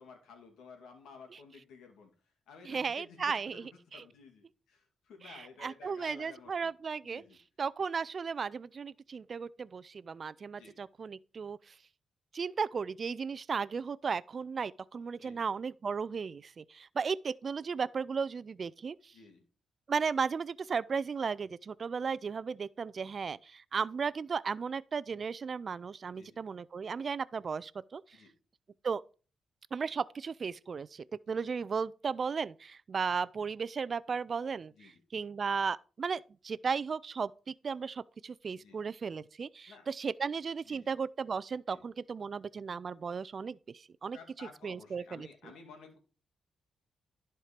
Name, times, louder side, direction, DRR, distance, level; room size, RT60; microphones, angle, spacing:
voice 1, 0.0-2.1 2.5-6.7 7.0-7.4 10.5-10.8 15.2-15.4 19.1-19.4 26.1-26.4 28.1-28.3 31.2-31.4 34.7-35.0 38.5-38.8 39.7-39.9 40.6-40.9 41.7-41.8 44.1-46.0, left 5 dB, 80° left, 2.2 m, -54 dB
voice 2, 2.7-4.0 5.2-7.2 7.6-11.7 12.3-19.1 19.9-28.0 28.8-29.0 29.7-44.2 44.6-45.3, right 5 dB, 50° right, 0.4 m, -35 dB
11.0 x 4.5 x 5.1 m
supercardioid pair, 55°, 0 cm